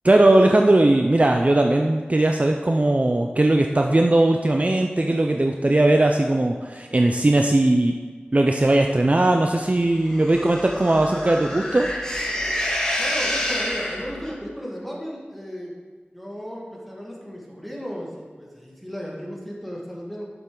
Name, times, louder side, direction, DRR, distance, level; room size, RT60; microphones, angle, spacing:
voice 1, 0.0-7.9 8.3-11.9, right 1 dB, 35° right, 3 dB, 0.5 m, -19 dB
sound 1, 10.0-14.3, left 1 dB, 20° left, 1.7 m, -28 dB
voice 2, 13.0-15.7 16.1-20.2, equal, ahead, -4 dB, 2.0 m, -35 dB
7.7 x 7.0 x 3.9 m, 1.5 s
wide cardioid pair, 45°, 4 cm